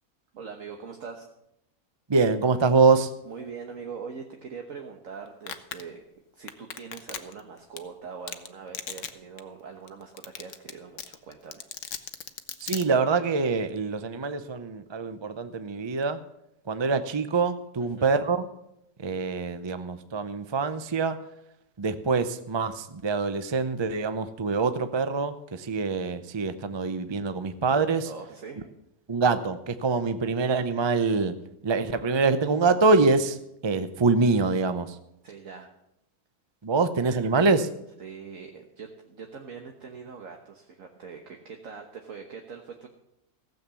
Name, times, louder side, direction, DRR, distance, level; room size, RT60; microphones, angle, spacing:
voice 1, 0.3-1.3 3.2-6.0 6.3-11.7 17.8-18.1 28.1-28.6 35.2-35.7 38.0-42.9, right 5 dB, 60° right, 3 dB, 1.5 m, -42 dB
voice 2, 2.1-3.1 12.6-16.2 16.7-18.5 19.0-21.2 21.8-28.1 29.1-31.3 31.6-33.4 33.6-35.0 36.6-37.7, right 4 dB, 35° right, 11 dB, 0.4 m, -25 dB
Domestic sounds home sounds, 5.5-5.8 6.5-7.4 7.8-7.9 8.3-8.5 8.7-9.1 9.4-9.5 9.9-10.0 10.2-10.7 11.0-12.8, left 8 dB, 60° left, 1.1 m, -35 dB
15.5 x 7.9 x 7.1 m, 0.82 s
omnidirectional pair, 1.6 m